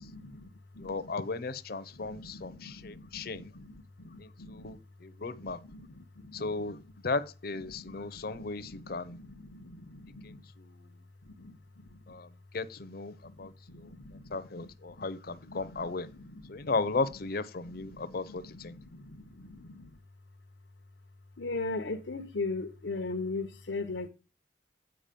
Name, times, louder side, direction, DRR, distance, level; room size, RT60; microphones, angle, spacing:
voice 1, 0.0-1.0 2.0-4.8 5.3-6.7 7.7-10.4 11.2-12.1 13.2-16.7 17.7-20.0 21.4-24.1, left 3 dB, 85° left, 0.9 m, -41 dB
voice 2, 0.8-3.6 4.2-5.6 6.3-9.2 10.2-10.9 12.1-16.1 16.5-18.8, left 3 dB, 55° left, 0.7 m, -36 dB
8.9 x 4.8 x 5.2 m
head